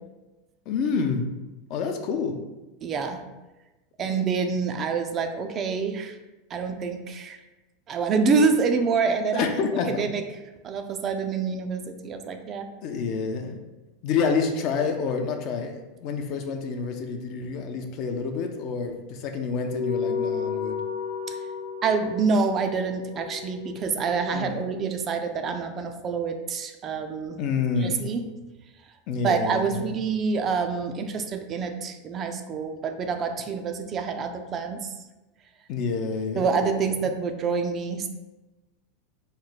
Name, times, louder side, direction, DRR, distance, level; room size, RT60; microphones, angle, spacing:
voice 1, 0.7-1.3 1.7-2.3 9.3-10.0 12.8-13.6 14.0-20.7 24.3-24.6 27.4-28.0 29.1-29.9 35.7-36.9, left 5 dB, 50° left, 5 dB, 0.5 m, -28 dB
voice 2, 2.8-3.2 4.0-6.1 6.5-7.4 7.9-9.5 9.9-10.2 10.6-12.6 21.3-21.4 21.8-27.4 27.8-28.2 29.2-34.9 36.4-38.1, right 5 dB, 35° right, 6 dB, 0.3 m, -26 dB
sound 1, 19.6-24.4, left 5 dB, 90° left, 1.0 m, -33 dB
3.1 x 2.1 x 3.9 m, 1.1 s
supercardioid pair, 115°, 0 cm